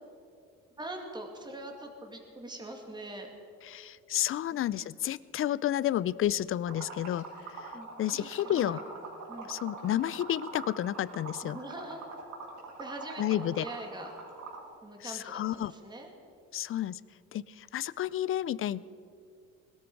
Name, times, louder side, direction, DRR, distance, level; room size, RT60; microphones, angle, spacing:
voice 1, 0.8-3.3 4.5-4.6 7.7-8.8 9.3-9.5 11.5-12.0 12.8-14.1 14.8-16.1, right 1 dB, 15° right, 2 dB, 2.2 m, -43 dB
voice 2, 3.7-7.3 8.0-8.8 9.5-11.6 13.2-13.6 15.0-15.7 16.5-17.0 17.3-18.9, left 12 dB, 40° left, 19 dB, 0.4 m, -31 dB
Liquid, 6.7-14.7, right 4 dB, 60° right, 4.9 m, -43 dB
21.0 x 13.0 x 4.7 m, 2.4 s
cardioid pair, 100°, 33 cm